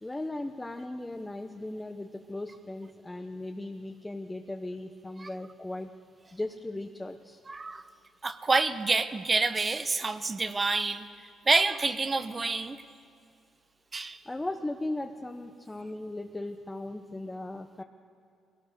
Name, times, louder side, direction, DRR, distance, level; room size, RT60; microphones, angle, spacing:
voice 1, 0.0-5.9 6.3-7.4 14.2-17.8, left 2 dB, 15° left, 4 dB, 0.9 m, -37 dB
voice 2, 7.5-7.9 8.2-11.1 11.5-12.8 13.9-14.2, right 3 dB, 30° right, 11 dB, 1.0 m, -27 dB
21.5 x 18.0 x 6.7 m, 2.5 s
cardioid pair, 90°, 0 cm